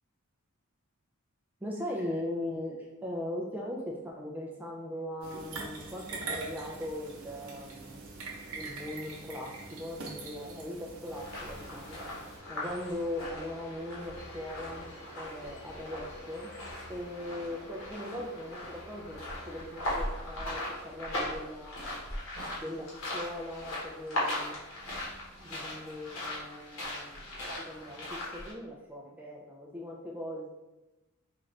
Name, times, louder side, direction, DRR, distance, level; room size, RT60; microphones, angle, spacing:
voice 1, 1.6-8.2 8.5-12.0 12.5-14.9 15.2-16.5 16.9-22.0 22.6-24.6 25.4-30.5, left 1 dB, 10° right, -2 dB, 0.3 m, -40 dB
sound 1, 5.2-12.4, right 3 dB, 80° right, 0.8 m, -43 dB
sound 2, 11.1-28.5, left 1 dB, 70° left, 1.2 m, -39 dB
3.9 x 2.5 x 3.2 m, 1.0 s
head